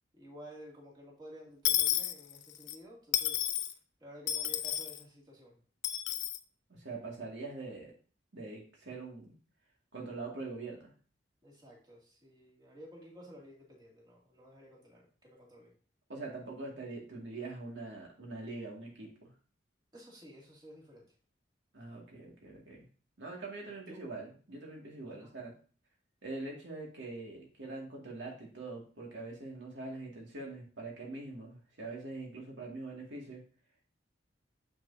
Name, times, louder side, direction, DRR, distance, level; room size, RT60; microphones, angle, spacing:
voice 1, 0.1-5.6 11.4-15.7 19.9-21.1 23.9-24.0 25.0-25.3, equal, 25° right, -4 dB, 2.4 m, -53 dB
Dishes pots and pans / Coin (dropping), 1.6-2.8 3.1-3.7 4.3-5.0 5.8-6.4, left 12 dB, 70° left, 0.6 m, -31 dB
voice 2, 6.7-7.9 8.3-9.3 9.9-10.9 16.1-19.3 21.7-22.9 23.2-25.5 26.2-33.4, right 3 dB, 85° right, -1 dB, 2.2 m, -43 dB
7.1 x 6.5 x 2.7 m, 0.40 s
head